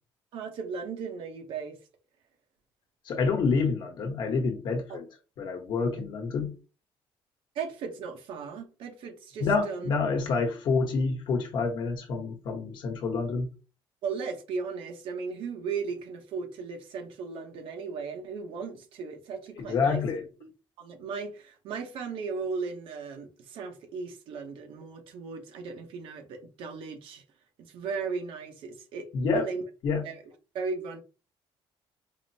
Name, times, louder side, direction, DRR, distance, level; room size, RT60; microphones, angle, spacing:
voice 1, 0.3-1.8 4.9-5.0 7.5-9.9 14.0-20.0 20.4-20.5 20.8-27.2 27.7-29.7 30.0-30.2 30.5-31.0, right 5 dB, 70° right, 0.8 m, -36 dB
voice 2, 3.0-5.1 5.4-6.5 9.4-13.5 19.6-20.2 29.1-29.5 29.8-30.0, left 4 dB, 55° left, 1.0 m, -28 dB
4.9 x 2.0 x 2.6 m
cardioid pair, 175°, 9 cm